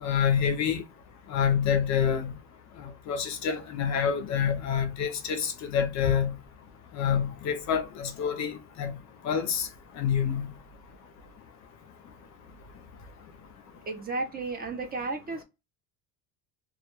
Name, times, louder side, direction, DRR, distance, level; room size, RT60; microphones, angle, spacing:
voice 1, 0.0-0.8 1.3-2.3 3.1-6.4 7.0-8.9 9.2-9.7 10.0-10.5, left 7 dB, 45° left, 0.5 m, -27 dB
voice 2, 13.9-15.4, right 3 dB, 25° right, 0.5 m, -33 dB
2.2 x 2.1 x 2.9 m
cardioid pair, 130°, 39 cm